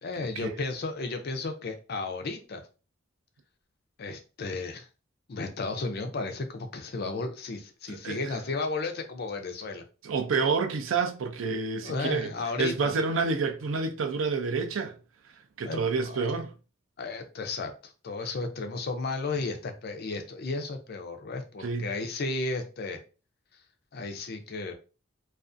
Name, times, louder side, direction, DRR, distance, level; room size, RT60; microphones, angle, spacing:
voice 1, 0.0-2.6 4.0-4.9 5.3-9.8 11.8-12.9 15.6-16.3 17.0-23.0 23.9-24.7, left 3 dB, 55° left, 0.5 m, -34 dB
voice 2, 7.9-8.3 10.0-12.3 12.6-15.0 15.2-16.5 21.6-21.9, right 4 dB, 75° right, 0.4 m, -29 dB
2.4 x 2.3 x 2.5 m
head